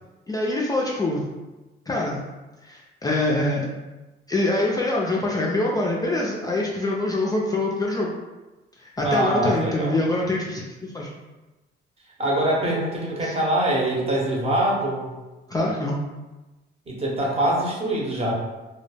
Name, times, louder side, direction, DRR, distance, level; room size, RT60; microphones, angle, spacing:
voice 1, 0.3-1.2 1.9-2.2 2.6-3.6 4.3-8.1 8.8-11.1 13.2-13.4 15.5-16.0, left 2 dB, 20° left, -3 dB, 0.3 m, -24 dB
voice 2, 9.0-10.0 12.2-15.1 16.9-18.3, right 1 dB, 30° right, -3 dB, 0.7 m, -23 dB
2.2 x 2.0 x 3.2 m, 1.1 s
cardioid pair, 90°, 20 cm